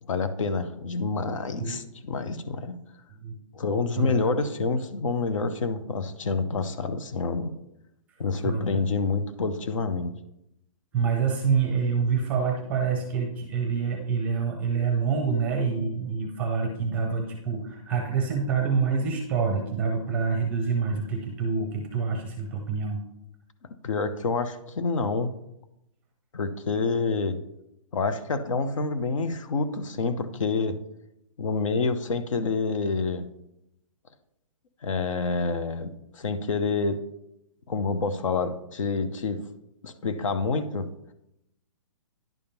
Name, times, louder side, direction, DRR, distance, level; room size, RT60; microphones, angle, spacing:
voice 1, 0.0-2.8 3.5-7.5 8.2-10.1 23.8-25.3 26.3-27.4 27.9-30.8 31.4-33.3 34.8-37.0 37.7-39.4 39.8-40.9, left 4 dB, 65° left, 10 dB, 0.8 m, -27 dB
voice 2, 4.0-4.3 8.4-8.8 10.9-23.0, right 5 dB, 10° right, 2 dB, 0.7 m, -27 dB
10.5 x 3.6 x 5.8 m, 0.83 s
hypercardioid pair, 175°, 17 cm